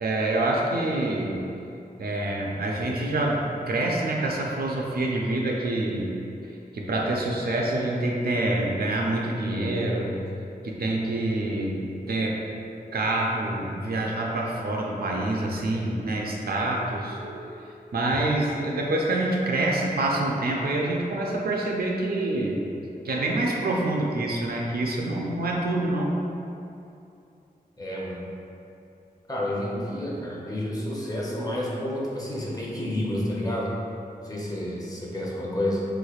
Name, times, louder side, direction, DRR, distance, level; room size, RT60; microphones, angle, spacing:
voice 1, 0.0-1.5 2.0-6.1 6.4-10.2 10.6-11.8 12.1-12.4 12.9-22.6 23.0-26.1, right 2 dB, 75° right, -1 dB, 0.4 m, -26 dB
voice 2, 27.8-28.2 29.3-33.7 34.2-35.9, left 1 dB, 25° left, -4 dB, 0.6 m, -30 dB
3.4 x 3.2 x 2.3 m, 2.7 s
wide cardioid pair, 85°, 16 cm